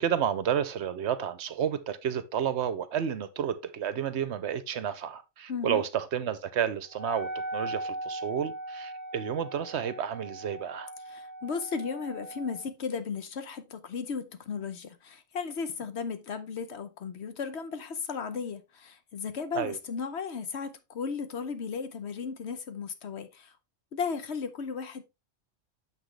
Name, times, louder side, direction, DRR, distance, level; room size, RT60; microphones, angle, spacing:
voice 1, 0.0-10.9 19.5-19.8, right 8 dB, 65° right, 0.9 m, -31 dB
voice 2, 5.5-5.8 11.1-23.5 23.9-25.0, left 5 dB, 60° left, 1.1 m, -35 dB
Wind instrument woodwind instrument, 6.9-12.7, right 1 dB, 15° right, 0.9 m, -39 dB
7.3 x 6.0 x 3.2 m
omnidirectional pair, 1.3 m